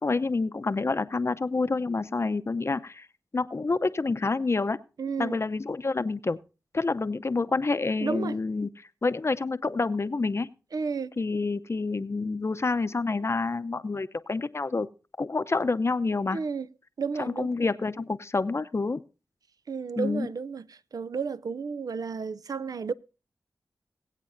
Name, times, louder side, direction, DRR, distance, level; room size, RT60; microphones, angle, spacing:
voice 1, 0.0-3.1 3.3-4.8 5.2-6.4 6.7-8.7 9.0-10.5 11.2-14.9 15.2-16.4 17.2-19.0 20.0-20.3, left 3 dB, 45° left, 0.6 m, -28 dB
voice 2, 5.0-5.4 8.0-8.4 10.7-11.2 16.3-16.7 17.0-17.5 19.7-22.9, right 5 dB, 70° right, 0.4 m, -32 dB
21.0 x 8.2 x 2.6 m
cardioid pair, 50°, 7 cm